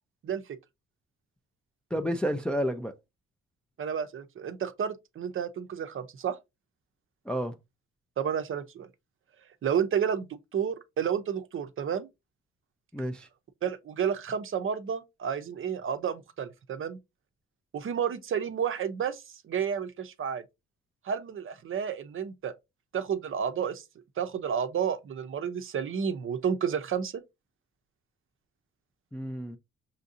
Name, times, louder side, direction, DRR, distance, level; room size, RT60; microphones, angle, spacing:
voice 1, 1.9-2.9 7.3-7.5 12.9-13.3 29.1-29.6, equal, 5° left, 0.4 m, -30 dB
voice 2, 3.8-6.4 8.2-8.9 9.6-12.1 13.6-17.0 17.7-20.4 21.0-22.5 22.9-23.8 24.2-27.2, right 7 dB, 45° right, 0.6 m, -31 dB
5.7 x 2.6 x 2.6 m
cardioid pair, 100°, 30 cm